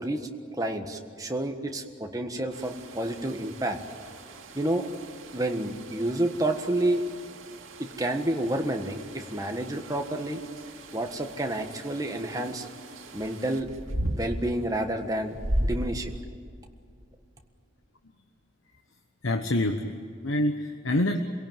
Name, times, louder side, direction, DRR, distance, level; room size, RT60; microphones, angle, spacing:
voice 1, 0.0-3.8 4.5-4.9 5.3-7.0 7.8-10.4 10.9-12.7 13.1-13.7 14.1-16.1, right 1 dB, 15° right, 4 dB, 1.5 m, -29 dB
sound 1, 2.5-16.2, right 1 dB, 85° right, 2.3 m, -37 dB
voice 2, 19.2-21.2, left 1 dB, 75° left, 5 dB, 1.2 m, -27 dB
27.5 x 17.5 x 9.2 m, 2.4 s
head